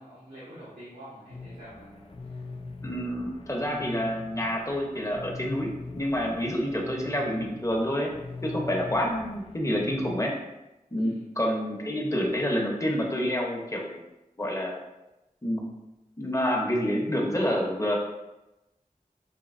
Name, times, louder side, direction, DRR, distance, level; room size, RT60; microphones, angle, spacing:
voice 1, 0.0-2.4 10.9-11.3, equal, 85° right, -11 dB, 1.3 m, -47 dB
sound 1, 1.3-10.2, left 3 dB, 40° left, 0.4 m, -42 dB
voice 2, 2.8-5.7 5.9-8.1 8.4-10.3 10.9-14.0 14.4-14.8 15.4-15.7 16.2-18.0, equal, 20° left, -1 dB, 0.8 m, -28 dB
5.1 x 2.7 x 2.5 m, 0.97 s
wide cardioid pair, 50°, 15 cm